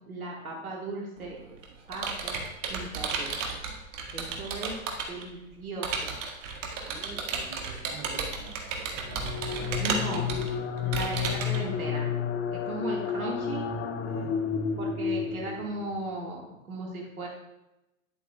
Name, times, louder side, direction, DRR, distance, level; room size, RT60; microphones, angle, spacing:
voice 1, 0.1-1.4 1.9-2.4 2.7-3.6 4.1-4.8 5.1-6.2 9.8-10.3 10.8-12.1 12.5-13.6 14.8-16.4 16.7-17.3, right 2 dB, 90° right, -2 dB, 1.7 m, -36 dB
Computer keyboard, 1.2-5.2 5.8-11.6, right 5 dB, 65° right, 1.8 m, -33 dB
voice 2, 6.8-10.0 10.5-10.7 14.0-14.4, right 4 dB, 40° right, 1 dB, 2.6 m, -46 dB
sound 1, 9.0-15.9, left 7 dB, 30° left, 0.8 m, -31 dB
10.5 x 8.2 x 2.2 m, 0.93 s
hypercardioid pair, 105°, 42 cm